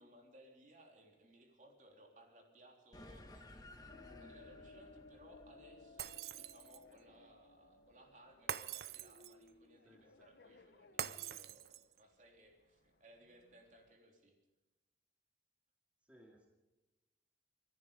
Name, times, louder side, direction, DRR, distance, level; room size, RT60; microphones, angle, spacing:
voice 1, 0.0-3.4 4.2-14.4, right 1 dB, 45° right, 1 dB, 3.6 m, -63 dB
sound 1, 2.9-7.7, left 1 dB, 20° left, 1.4 m, -58 dB
sound 2, 3.9-14.0, left 3 dB, 70° left, 0.9 m, -62 dB
Shatter, 6.0-6.9 8.5-9.5 11.0-12.0, right 9 dB, 65° right, 0.6 m, -44 dB
voice 2, 9.8-10.3 16.0-16.5, equal, 10° right, -1 dB, 2.2 m, -64 dB
25.5 x 11.0 x 5.2 m, 1.1 s
head